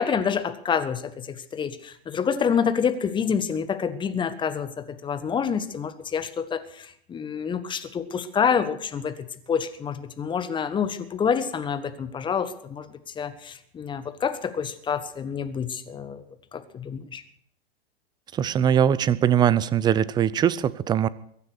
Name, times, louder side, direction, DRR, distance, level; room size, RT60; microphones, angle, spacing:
voice 1, 0.0-16.2 16.5-17.2, left 7 dB, 15° left, 11 dB, 1.3 m, -27 dB
voice 2, 18.4-21.1, right 9 dB, 15° right, 19 dB, 0.6 m, -21 dB
22.0 x 9.9 x 6.4 m, 0.67 s
figure-of-eight pair, 100°, 31 cm